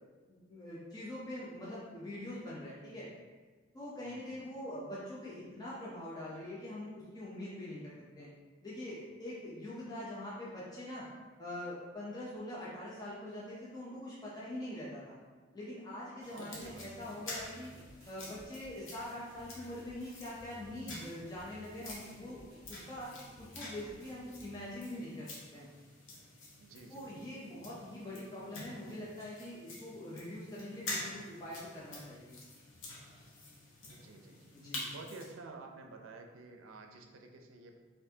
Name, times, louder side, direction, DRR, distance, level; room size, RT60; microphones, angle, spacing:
voice 1, 0.3-3.1 3.7-8.3 8.6-11.1 11.4-15.2 15.5-17.7 18.1-22.4 22.7-23.1 23.4-25.7 26.9-32.4 34.5-34.8, left 1 dB, 20° left, -7 dB, 0.5 m, -44 dB
voice 2, 4.0-4.5 16.3-17.3 26.6-27.2 33.8-34.5 34.9-37.8, right 3 dB, 80° right, 3 dB, 0.5 m, -51 dB
sound 1, 16.2-35.3, left 2 dB, 75° left, 0.9 m, -48 dB
sound 2, 16.5-24.5, equal, 15° right, 1.4 m, -58 dB
4.4 x 2.6 x 2.7 m, 1.3 s
head